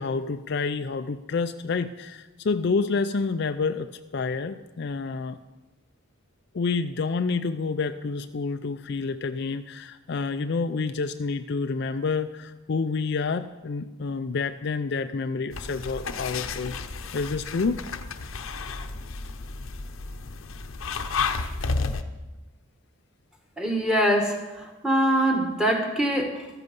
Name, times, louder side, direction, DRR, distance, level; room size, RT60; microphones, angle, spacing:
voice 1, 0.0-5.4 6.5-16.8 17.1-17.8, left 4 dB, 50° left, 9 dB, 0.4 m, -28 dB
sound 1, 15.5-22.0, left 4 dB, 70° left, 0.8 m, -32 dB
voice 2, 23.6-26.5, right 1 dB, 5° right, 2 dB, 1.7 m, -24 dB
14.0 x 13.5 x 5.3 m, 1.1 s
head